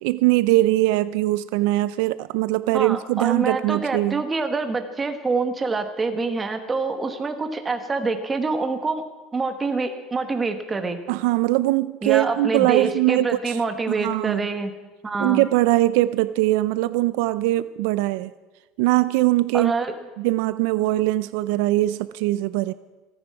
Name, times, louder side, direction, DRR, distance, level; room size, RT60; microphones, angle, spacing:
voice 1, 0.0-4.2 11.1-13.6 13.9-14.5 15.2-18.3 18.8-19.7 20.2-22.7, right 17 dB, 75° right, 16 dB, 0.4 m, -21 dB
voice 2, 2.7-9.0 9.3-11.0 12.0-14.7 15.0-15.4 19.5-19.9, right 3 dB, 15° right, 7 dB, 1.2 m, -26 dB
28.0 x 9.7 x 4.8 m, 1.2 s
cardioid pair, 170°, 0 cm